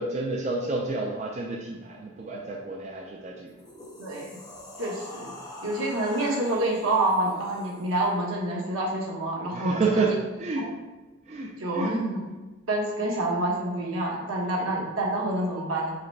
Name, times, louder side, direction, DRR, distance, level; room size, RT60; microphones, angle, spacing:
voice 1, 0.0-3.5 9.5-10.7 11.3-12.0, right 3 dB, 35° right, -1 dB, 0.4 m, -29 dB
sound 1, 3.5-8.1, left 1 dB, 20° left, 0.8 m, -43 dB
voice 2, 4.0-4.4 4.8-5.3 5.6-10.2 10.6-10.7 11.6-12.2 12.7-15.9, right 1 dB, 80° right, -3 dB, 1.2 m, -27 dB
4.8 x 2.2 x 4.5 m, 1.2 s
head